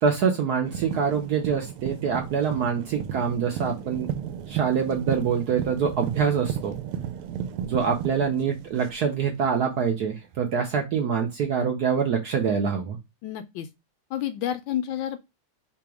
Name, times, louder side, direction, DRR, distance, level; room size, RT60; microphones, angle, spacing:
voice 1, 0.0-4.1 4.5-6.8 7.6-13.0, right 6 dB, 65° right, 1.0 m, -25 dB
sound 1, 0.6-9.5 10.3-10.4, right 9 dB, 80° right, 1.4 m, -34 dB
voice 2, 13.2-13.7 14.1-15.2, left 11 dB, 75° left, 1.2 m, -29 dB
3.4 x 2.9 x 4.7 m
omnidirectional pair, 2.3 m